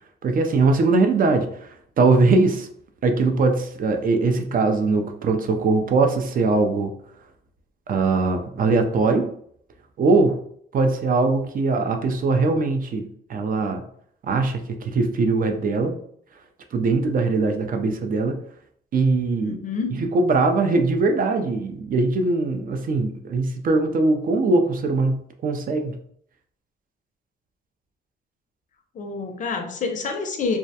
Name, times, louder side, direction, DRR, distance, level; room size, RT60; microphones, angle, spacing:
voice 1, 0.2-2.7 3.0-6.9 7.9-9.3 10.0-10.4 10.7-13.8 14.2-16.0 16.7-18.4 18.9-19.6 19.9-26.0, right 3 dB, 45° right, 5 dB, 0.4 m, -21 dB
voice 2, 19.4-20.0 28.9-30.6, left 4 dB, 40° left, 4 dB, 0.5 m, -28 dB
2.3 x 2.1 x 2.7 m, 0.64 s
cardioid pair, 90°, 20 cm